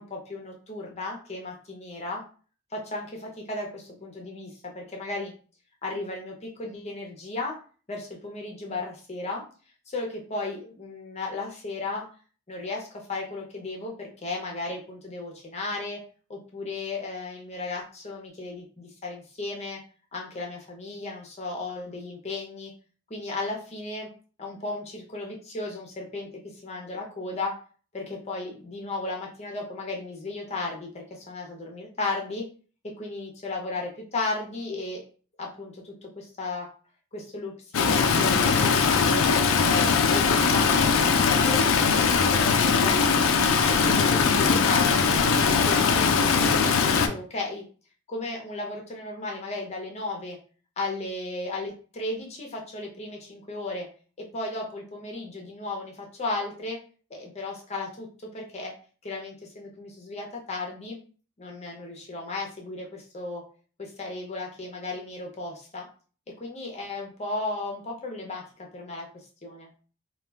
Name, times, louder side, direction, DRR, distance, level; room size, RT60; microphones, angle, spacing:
voice 1, 0.0-2.2 2.7-5.3 5.8-7.6 7.9-9.4 9.9-12.1 12.5-16.0 16.3-19.8 20.1-22.7 23.1-24.1 24.4-27.6 27.9-32.4 33.0-35.0 35.4-36.7 37.1-39.2 39.6-43.0 43.5-45.1 45.6-47.6 48.1-50.4 50.8-53.9 54.3-56.8 57.1-58.1 58.3-58.7 59.0-61.0 61.4-63.4 63.8-65.9 66.4-69.1 69.4-69.7, left 2 dB, 30° left, -1 dB, 0.6 m, -35 dB
Stream, 37.7-47.1, left 5 dB, 75° left, 0.3 m, -21 dB
2.3 x 2.2 x 3.3 m, 0.39 s
head